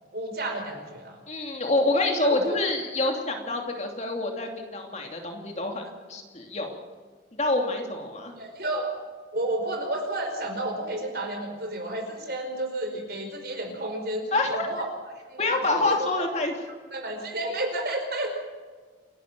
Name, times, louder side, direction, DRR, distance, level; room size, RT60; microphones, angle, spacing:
voice 1, 0.1-1.2 2.1-2.6 8.4-8.9 9.3-14.8 15.3-16.1 16.9-18.3, right 1 dB, 55° right, 4 dB, 4.8 m, -31 dB
voice 2, 1.3-5.8 6.1-6.8 7.4-8.3 14.3-14.6 15.4-16.5, left 2 dB, 35° left, 2 dB, 2.8 m, -27 dB
28.5 x 12.0 x 7.6 m, 1.5 s
head